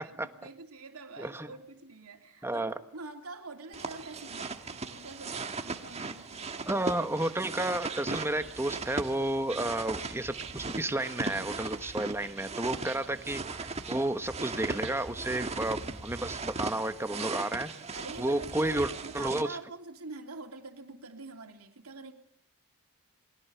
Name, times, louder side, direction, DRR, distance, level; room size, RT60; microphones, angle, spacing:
voice 1, 0.0-2.7 2.9-6.8 12.6-13.1 17.9-22.1, right 3 dB, 70° right, 3.0 m, -45 dB
voice 2, 1.2-1.5 2.4-2.7 6.7-17.7 18.2-19.5, right 1 dB, 10° right, 1.2 m, -32 dB
sound 1, 3.7-19.4, right 3 dB, 30° right, 1.4 m, -38 dB
28.0 x 22.0 x 7.0 m
head